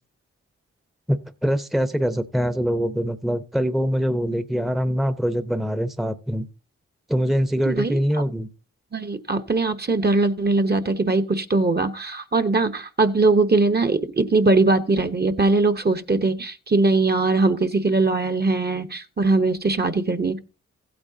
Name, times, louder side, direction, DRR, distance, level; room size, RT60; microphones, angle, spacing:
voice 1, 1.1-6.5 7.1-8.5, equal, ahead, 0.8 m, -23 dB
voice 2, 8.9-20.4, right 3 dB, 35° right, 1.0 m, -21 dB
15.5 x 8.8 x 2.8 m
cardioid pair, 45°, 29 cm